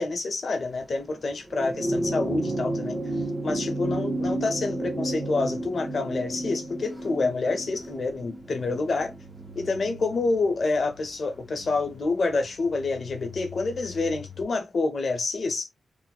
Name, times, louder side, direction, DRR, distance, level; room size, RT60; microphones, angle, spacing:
voice 1, 0.0-3.0 3.4-9.1 9.5-15.7, left 3 dB, 55° left, 0.8 m, -27 dB
sound 1, 0.6-14.4, left 3 dB, 20° right, 0.9 m, -49 dB
sound 2, 1.5-10.2 11.4-11.5, right 1 dB, 5° left, 0.8 m, -31 dB
2.6 x 2.0 x 2.3 m
cardioid pair, 80°, 0 cm